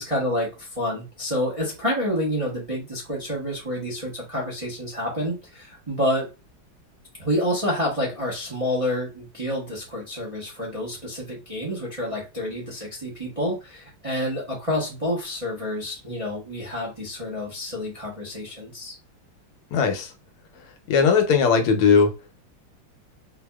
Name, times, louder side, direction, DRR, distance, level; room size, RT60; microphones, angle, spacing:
voice 1, 0.0-6.3 7.2-19.0, left 1 dB, 25° right, -3 dB, 0.7 m, -28 dB
voice 2, 19.7-20.1 20.9-22.1, left 5 dB, 85° left, 5 dB, 1.7 m, -18 dB
4.7 x 2.7 x 2.3 m, 0.27 s
omnidirectional pair, 2.3 m